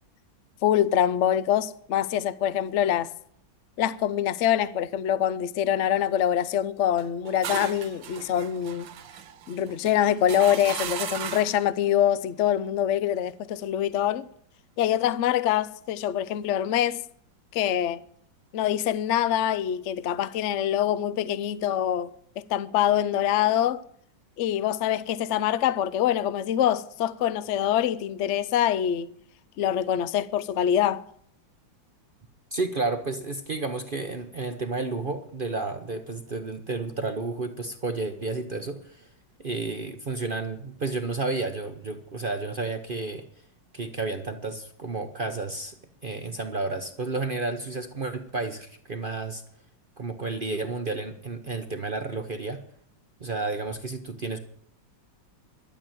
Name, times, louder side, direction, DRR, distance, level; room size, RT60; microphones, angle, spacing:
voice 1, 0.6-3.1 3.8-8.9 9.5-14.3 14.8-17.0 17.5-18.0 18.5-22.1 22.4-23.8 24.4-29.1 29.6-31.0, left 10 dB, 80° left, 0.6 m, -25 dB
sound 1, 7.0-11.7, right 10 dB, 80° right, 1.5 m, -37 dB
voice 2, 32.5-39.1 39.4-43.2 43.7-45.7 46.0-49.4 50.0-52.6 53.2-54.4, right 3 dB, 45° right, 0.7 m, -31 dB
12.0 x 7.7 x 8.9 m
omnidirectional pair, 2.0 m